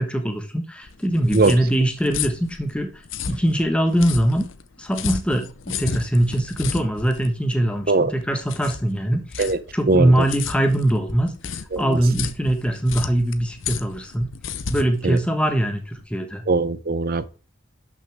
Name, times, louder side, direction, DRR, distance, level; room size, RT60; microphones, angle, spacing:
voice 1, 0.0-2.9 3.3-4.5 4.8-14.3 14.7-16.4, right 1 dB, 5° left, 1.2 m, -22 dB
sound 1, 0.8-16.0, left 6 dB, 70° left, 0.7 m, -33 dB
voice 2, 9.9-10.3 11.7-12.0 15.0-15.2 16.5-17.3, right 3 dB, 45° right, 0.6 m, -20 dB
11.0 x 6.3 x 3.5 m
head